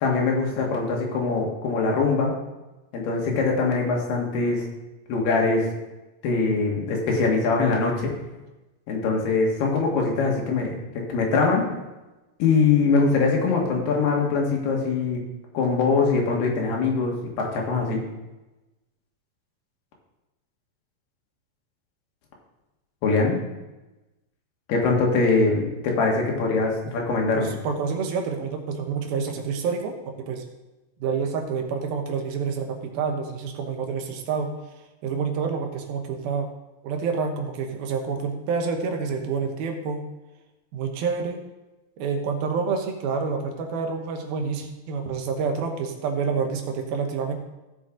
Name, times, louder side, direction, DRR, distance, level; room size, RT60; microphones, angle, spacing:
voice 1, 0.0-2.3 2.9-4.7 5.1-5.7 6.2-8.1 8.9-11.7 12.4-15.2 15.5-18.0 23.0-23.4 24.7-27.5, left 4 dB, 80° left, -1 dB, 3.7 m, -22 dB
voice 2, 27.4-29.9 30.3-30.4 31.0-34.5 35.0-36.5 36.8-40.1 40.7-41.4 42.0-47.3, right 5 dB, 75° right, 3 dB, 2.8 m, -28 dB
15.0 x 5.9 x 3.8 m, 1.1 s
omnidirectional pair, 4.4 m